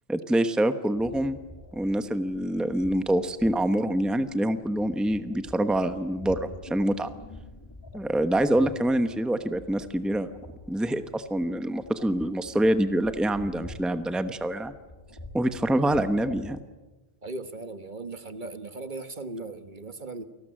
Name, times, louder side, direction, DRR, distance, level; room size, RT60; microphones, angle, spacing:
voice 1, 0.1-1.4 1.7-7.1 7.9-10.3 10.7-14.7 15.3-16.6, right 1 dB, ahead, 10 dB, 1.0 m, -26 dB
sound 1, 0.9-16.7, left 1 dB, 25° left, 2.3 m, -47 dB
voice 2, 17.2-20.2, right 2 dB, 50° right, 10 dB, 1.5 m, -38 dB
29.0 x 19.5 x 9.0 m, 1.1 s
omnidirectional pair, 1.1 m